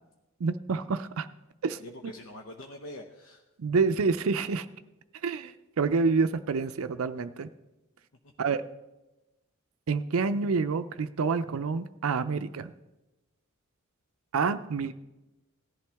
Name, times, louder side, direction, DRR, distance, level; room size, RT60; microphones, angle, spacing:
voice 1, 0.4-1.3 1.6-1.8 3.6-4.7 5.2-7.5 8.4-8.6 9.9-12.7 14.3-14.9, right 4 dB, 75° right, 10 dB, 0.5 m, -28 dB
voice 2, 1.8-3.4 8.2-8.3, left 1 dB, 70° left, 3 dB, 0.9 m, -44 dB
18.0 x 11.0 x 3.5 m, 1.0 s
head